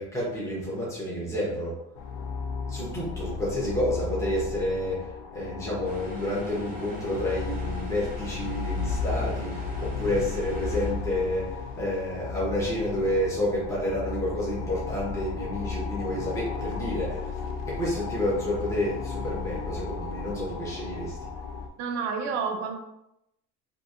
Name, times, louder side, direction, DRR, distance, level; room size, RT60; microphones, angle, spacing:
voice 1, 0.0-1.7 2.7-5.1 5.3-11.5 11.7-17.3 17.7-21.2, left 1 dB, 10° left, -7 dB, 0.9 m, -29 dB
sound 1, 2.0-21.7, left 5 dB, 80° left, 0.5 m, -34 dB
sound 2, 5.8-10.9, left 2 dB, 25° right, 0.8 m, -42 dB
voice 2, 21.8-22.8, right 5 dB, 55° right, 5 dB, 0.6 m, -30 dB
2.7 x 2.6 x 2.5 m, 0.83 s
cardioid pair, 135°, 33 cm